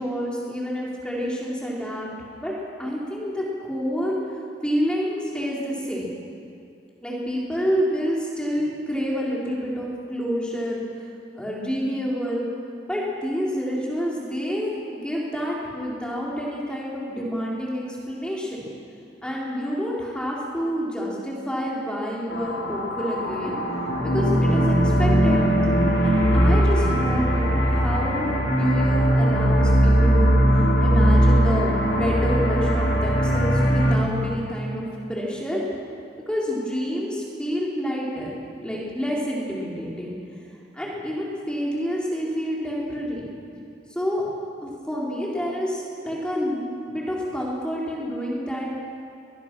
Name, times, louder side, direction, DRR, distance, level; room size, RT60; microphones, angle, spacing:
voice 1, 0.0-2.1 2.4-2.5 2.8-4.2 4.6-6.1 7.0-10.8 11.3-12.5 12.9-18.6 19.2-23.6 24.0-25.4 26.0-30.4 30.8-34.8 35.1-35.6 36.3-38.3 38.6-40.2 40.7-43.2 43.9-44.2 44.6-48.8, equal, 5° left, -5 dB, 4.0 m, -28 dB
sound 1, 22.3-34.0, equal, 80° left, 3.0 m, -20 dB
22.0 x 20.5 x 6.2 m, 2.5 s
head